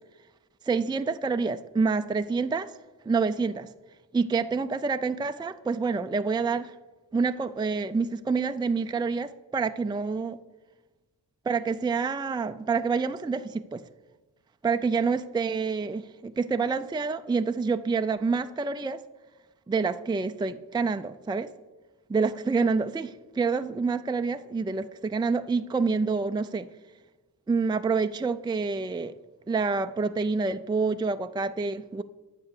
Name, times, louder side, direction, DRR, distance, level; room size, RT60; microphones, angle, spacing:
voice 1, 0.7-2.7 3.1-3.7 4.1-6.7 7.1-10.4 11.5-13.8 14.6-19.0 19.7-21.5 22.1-26.7 27.5-29.1 29.5-32.0, right 4 dB, 10° right, 9 dB, 0.4 m, -27 dB
10.5 x 7.2 x 6.6 m, 1.2 s
cardioid pair, 75°, 40 cm